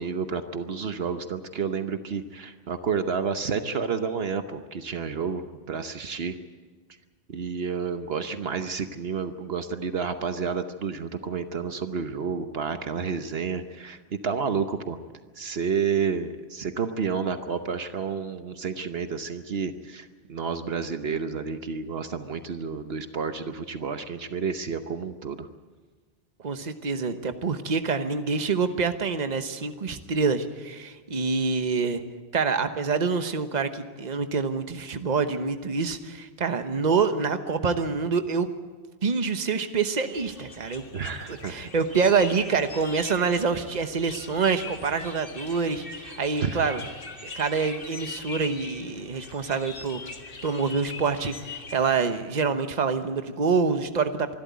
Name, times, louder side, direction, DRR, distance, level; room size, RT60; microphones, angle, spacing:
voice 1, 0.0-6.4 7.3-15.0 15.4-25.5 40.9-41.7 46.4-46.7, right 6 dB, 70° right, 9 dB, 1.2 m, -30 dB
voice 2, 26.4-32.0 32.3-38.5 39.0-40.8 41.3-46.8 47.2-50.0 50.4-54.3, right 5 dB, 45° right, 9 dB, 1.2 m, -26 dB
sound 1, 40.1-51.9, left 3 dB, 55° left, 2.1 m, -41 dB
25.0 x 12.5 x 9.4 m, 1.4 s
omnidirectional pair, 1.1 m